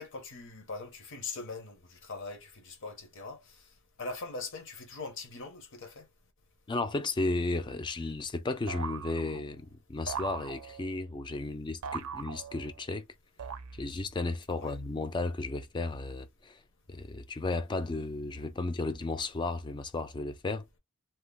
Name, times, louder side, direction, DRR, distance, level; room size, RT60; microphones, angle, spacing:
voice 1, 0.0-3.6 4.0-6.1 14.6-14.8, left 3 dB, 60° left, 0.9 m, -41 dB
voice 2, 6.7-13.1 13.7-16.6 16.9-20.7, left 2 dB, 20° left, 0.3 m, -34 dB
sound 1, 8.7-9.6 10.1-11.0 11.8-12.9 13.4-14.1, right 6 dB, 75° right, 0.4 m, -40 dB
2.9 x 2.1 x 3.3 m
head